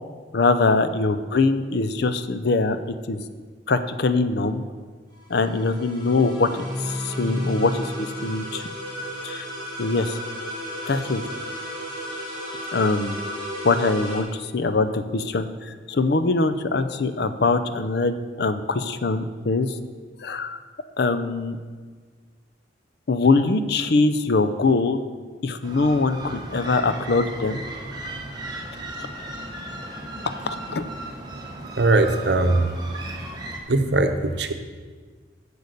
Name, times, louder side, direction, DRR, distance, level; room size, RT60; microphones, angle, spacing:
voice 1, 0.3-2.8 3.1-3.2 3.7-4.6 5.3-8.6 9.2-9.5 9.8-10.2 10.9-11.2 12.7-13.2 13.6-19.8 20.2-20.6 21.0-21.6 23.1-25.0 25.4-27.6 30.3-30.8, left 3 dB, 60° left, 11 dB, 0.6 m, -23 dB
sound 1, 5.1-14.2, equal, 25° left, 2.4 m, -35 dB
sound 2, 6.5-10.0, equal, ahead, 0.6 m, -34 dB
sound 3, 25.6-33.6, right 1 dB, 20° right, 1.1 m, -36 dB
voice 2, 31.7-32.7 33.7-34.5, right 2 dB, 60° right, 7 dB, 0.8 m, -20 dB
8.3 x 6.9 x 6.6 m, 1.5 s
head